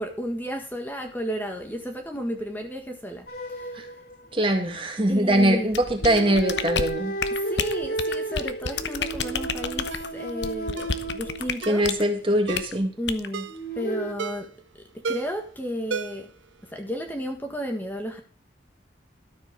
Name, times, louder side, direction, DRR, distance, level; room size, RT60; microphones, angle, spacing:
voice 1, 0.0-3.2 3.5-3.7 5.1-5.7 7.3-11.9 13.0-13.5 13.7-14.5 14.9-16.3 16.7-18.2, equal, 10° left, 3 dB, 1.5 m, -32 dB
sound 1, 3.3-4.9 6.0-12.0 13.5-14.1, right 2 dB, 55° left, 2.7 m, -33 dB
voice 2, 4.3-7.2 11.7-12.9, right 1 dB, 30° right, 4 dB, 2.1 m, -22 dB
sound 2, 5.7-12.0 12.5-12.7 13.1-13.3, left 5 dB, 70° left, 1.0 m, -30 dB
Ringtone, 9.9-10.1 10.8-11.0 11.6-11.9 12.5-12.8 13.3-13.6 14.2-14.6 15.0-15.4 15.9-16.4 16.7-16.8, right 4 dB, 85° right, 0.7 m, -33 dB
13.0 x 7.4 x 5.1 m, 0.39 s
head